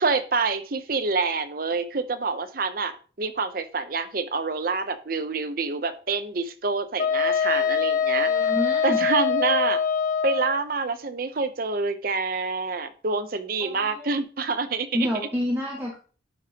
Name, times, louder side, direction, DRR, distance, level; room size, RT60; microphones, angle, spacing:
voice 1, 0.0-8.3 8.8-9.8 10.2-14.9, right 4 dB, 50° right, 10 dB, 0.7 m, -27 dB
Wind instrument woodwind instrument, 7.0-10.6, left 7 dB, 45° left, 0.9 m, -23 dB
voice 2, 8.2-9.0 13.6-14.1 14.9-16.0, left 1 dB, 15° right, -3 dB, 1.5 m, -28 dB
11.5 x 5.0 x 2.9 m, 0.38 s
head